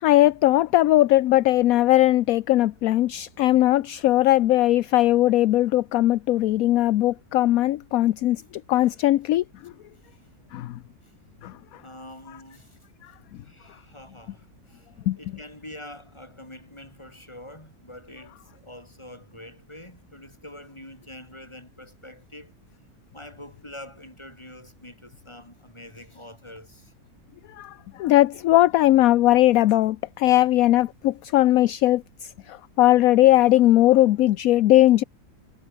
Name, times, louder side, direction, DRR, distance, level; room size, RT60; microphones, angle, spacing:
voice 1, 0.0-8.4 8.7-9.7 10.5-10.8 11.4-11.5 15.1-15.2 27.6-35.0, left 15 dB, 70° left, 1.0 m, -19 dB
voice 2, 11.7-12.8 13.4-14.9 15.2-22.5 23.1-26.9, left 1 dB, 15° left, 5.1 m, -45 dB
omnidirectional pair, 1.6 m